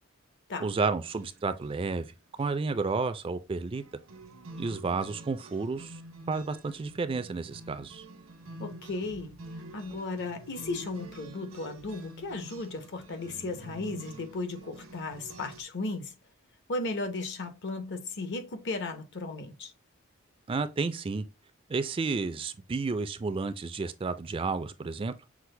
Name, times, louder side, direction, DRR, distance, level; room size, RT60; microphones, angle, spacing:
voice 1, 0.6-2.1 2.4-3.8 4.6-6.0 6.3-8.0 20.5-21.2 21.7-25.1, right 4 dB, 25° right, 0.4 m, -31 dB
sound 1, 1.1-1.7 1.9-2.0 2.4-2.6 3.8-15.6, right 2 dB, 85° right, 0.9 m, -47 dB
voice 2, 8.6-9.4 9.7-16.1 16.7-19.7, left 2 dB, 60° left, 0.9 m, -35 dB
6.0 x 2.1 x 3.2 m
head